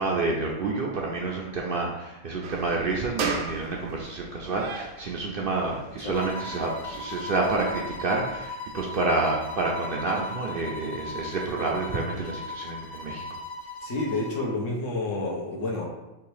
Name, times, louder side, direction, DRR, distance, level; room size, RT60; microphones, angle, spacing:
voice 1, 0.0-13.4, right 3 dB, 55° right, -1 dB, 0.6 m, -29 dB
sound 1, 2.4-8.5, right 5 dB, 90° right, 1.1 m, -37 dB
sound 2, 6.1-14.5, left 2 dB, 55° left, 0.5 m, -38 dB
voice 2, 13.8-15.9, left 2 dB, 70° left, -1 dB, 1.3 m, -29 dB
3.5 x 3.1 x 4.8 m, 0.97 s
omnidirectional pair, 1.4 m